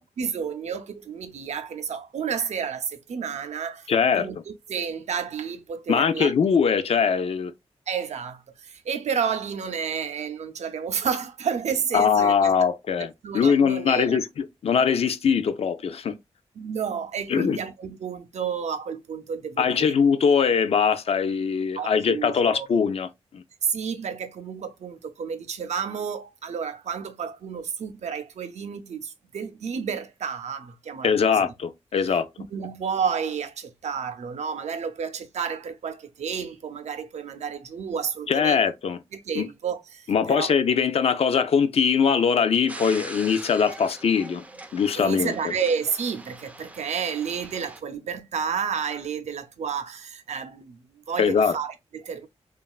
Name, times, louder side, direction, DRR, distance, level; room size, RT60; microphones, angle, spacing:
voice 1, 0.2-3.9 4.2-6.3 7.9-12.5 13.2-14.2 16.1-16.2 16.6-19.9 21.8-22.8 23.6-31.5 32.0-38.6 39.1-40.5 44.9-52.3, right 6 dB, 85° right, 0.5 m, -31 dB
voice 2, 3.9-4.3 5.9-7.5 11.9-13.1 13.3-16.1 17.3-17.6 19.6-23.1 23.3-23.4 31.0-32.3 38.3-39.0 39.4-39.5 40.1-44.4 44.7-45.3 51.2-51.6, left 6 dB, 60° left, 0.4 m, -22 dB
sound 1, 42.7-47.8, right 2 dB, 10° right, 0.3 m, -42 dB
2.9 x 2.3 x 2.3 m
wide cardioid pair, 120°, 11 cm